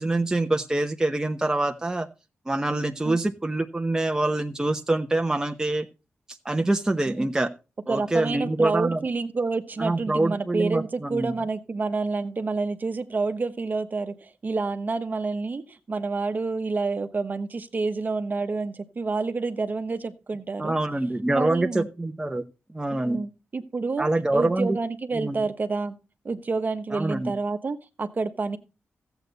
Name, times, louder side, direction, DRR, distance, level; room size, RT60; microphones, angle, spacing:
voice 1, 0.0-2.1 2.5-5.9 6.4-7.5 7.9-9.0 9.8-11.3 20.6-22.4 22.7-23.2 24.0-24.8 25.1-25.4 26.9-27.3, right 2 dB, 15° right, 5 dB, 0.9 m, -25 dB
voice 2, 7.9-20.8 21.3-21.9 22.9-26.0 26.2-28.6, right 3 dB, 45° right, 9 dB, 1.2 m, -28 dB
14.0 x 8.1 x 4.1 m, 0.30 s
cardioid pair, 80°, 4 cm